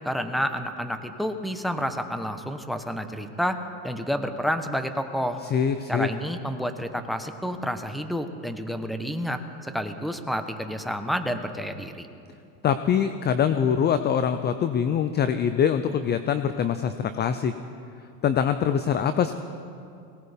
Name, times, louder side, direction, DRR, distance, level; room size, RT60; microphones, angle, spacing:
voice 1, 0.0-3.6 3.8-5.4 5.9-12.1, equal, ahead, 7 dB, 1.0 m, -29 dB
voice 2, 5.5-6.1 12.6-17.5 18.2-19.3, left 8 dB, 25° left, 10 dB, 0.5 m, -24 dB
22.5 x 18.0 x 3.5 m, 2.5 s
supercardioid pair, 105°, 45 cm